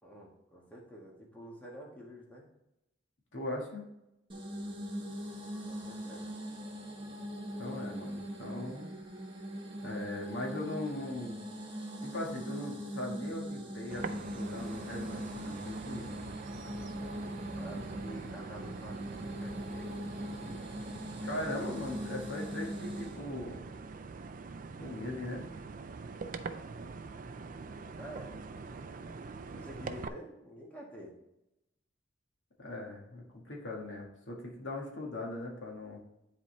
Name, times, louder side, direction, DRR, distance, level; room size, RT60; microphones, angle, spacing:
voice 1, 0.0-2.5 5.7-6.3 17.6-20.8 28.0-28.3 29.5-31.1, equal, 10° left, -3 dB, 1.5 m, -49 dB
voice 2, 3.3-3.8 7.6-8.9 9.8-11.4 11.7-16.2 21.2-23.6 24.8-25.5 32.6-36.0, left 1 dB, 85° left, -1 dB, 1.7 m, -40 dB
sound 1, 4.3-23.2, equal, 30° right, 1.1 m, -41 dB
sound 2, 13.9-30.1, right 4 dB, 45° right, 0.4 m, -44 dB
10.0 x 4.2 x 3.2 m, 0.88 s
head